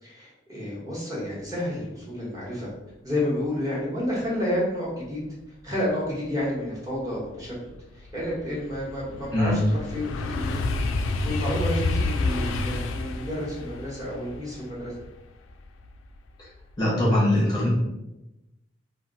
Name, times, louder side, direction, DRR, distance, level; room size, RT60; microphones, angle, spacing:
voice 1, 0.0-2.7 3.0-5.2 5.6-7.5 7.9-10.7 11.0-14.9, left 1 dB, 20° right, -6 dB, 0.9 m, -30 dB
sound 1, 6.6-6.7 7.1-16.2 16.6-17.0, left 2 dB, 85° left, 0.3 m, -30 dB
voice 2, 16.8-17.7, left 1 dB, 20° left, -6 dB, 0.6 m, -21 dB
2.2 x 2.1 x 3.8 m, 0.94 s
head